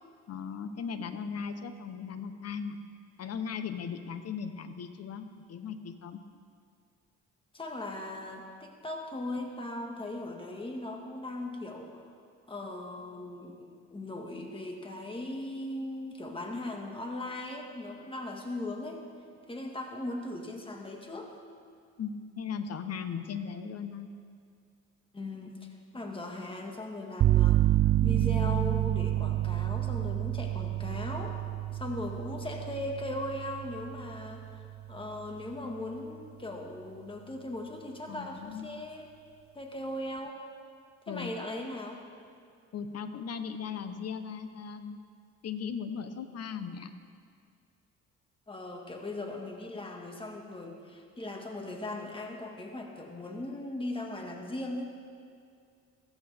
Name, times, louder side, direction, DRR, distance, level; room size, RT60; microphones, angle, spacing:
voice 1, 0.3-2.8 3.2-6.2 22.0-24.1 38.1-38.7 41.1-41.4 42.7-45.0 45.4-46.9, left 6 dB, 55° left, 9 dB, 0.9 m, -38 dB
voice 2, 7.5-12.1 12.5-19.1 19.5-21.3 25.1-25.7 25.9-27.7 28.0-31.4 31.7-39.1 39.5-40.4 41.1-42.0 48.5-54.8, left 2 dB, 15° left, 1 dB, 1.7 m, -38 dB
sound 1, 27.2-34.9, right 13 dB, 50° right, 0.5 m, -28 dB
15.5 x 14.0 x 3.5 m, 2.3 s
cardioid pair, 90°, 30 cm